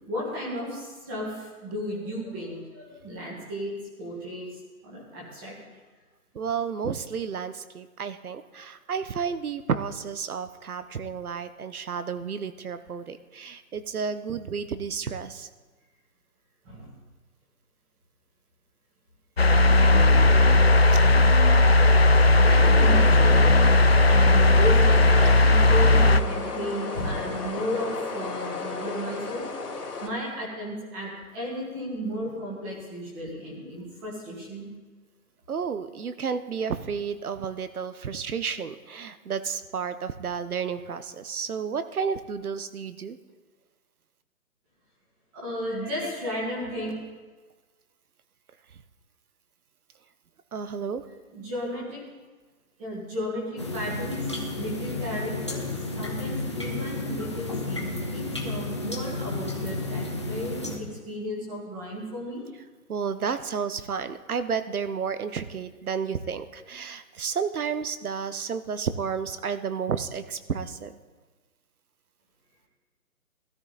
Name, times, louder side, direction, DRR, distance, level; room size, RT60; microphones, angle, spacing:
voice 1, 0.0-4.5 4.8-5.5 16.6-16.8 22.4-23.5 24.0-29.5 30.0-34.7 45.3-46.9 51.3-52.0 52.8-54.2 54.5-55.6 55.9-62.4 63.2-63.4, equal, 10° right, -4 dB, 1.5 m, -34 dB
voice 2, 6.3-15.5 35.5-43.2 50.5-51.0 62.9-71.0, right 6 dB, 70° right, 12 dB, 1.1 m, -31 dB
sound 1, 19.4-26.2, left 2 dB, 45° left, 0.4 m, -17 dB
sound 2, 21.5-30.1, left 4 dB, 85° left, 3.2 m, -35 dB
sound 3, 53.6-60.8, left 2 dB, 20° left, 0.7 m, -32 dB
18.0 x 13.0 x 4.1 m, 1.3 s
hypercardioid pair, 170°, 45 cm